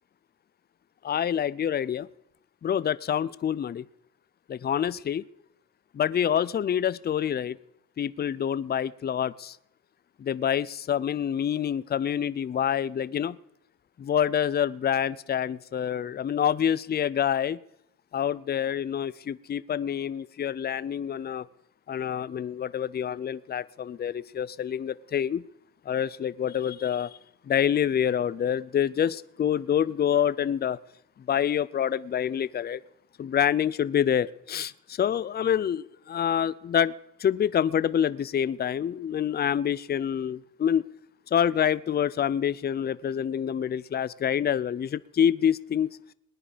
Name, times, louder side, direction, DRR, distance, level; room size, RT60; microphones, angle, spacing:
voice 1, 1.0-2.1 2.6-3.8 4.5-5.2 5.9-7.6 8.0-9.6 10.2-13.4 14.0-17.6 18.1-21.5 21.9-25.4 25.9-27.2 27.4-30.8 31.3-32.8 33.2-36.9 37.2-40.8 41.3-45.9, left 9 dB, 35° left, 19 dB, 0.5 m, -27 dB
20.0 x 10.0 x 5.1 m, 0.78 s
cardioid pair, 90°, 30 cm